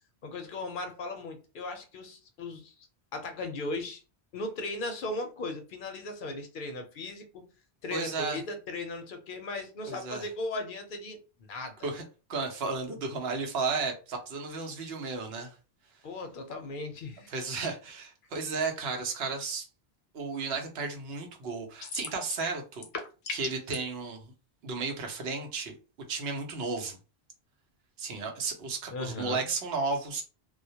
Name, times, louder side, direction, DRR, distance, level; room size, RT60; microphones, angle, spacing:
voice 1, 0.2-2.8 3.1-4.0 4.3-7.4 7.8-11.2 11.5-11.9 16.0-17.3 28.9-29.5, left 2 dB, 60° left, 0.6 m, -37 dB
voice 2, 7.9-8.4 9.9-10.2 11.8-12.0 12.3-15.5 17.3-19.7 20.1-22.8 23.3-24.3 24.6-25.7 26.1-27.0 28.0-30.2, right 4 dB, 75° right, 0.9 m, -33 dB
sound 1, 21.8-22.5 22.7-23.8, left 5 dB, 90° left, 0.9 m, -37 dB
2.2 x 2.1 x 2.7 m
omnidirectional pair, 1.1 m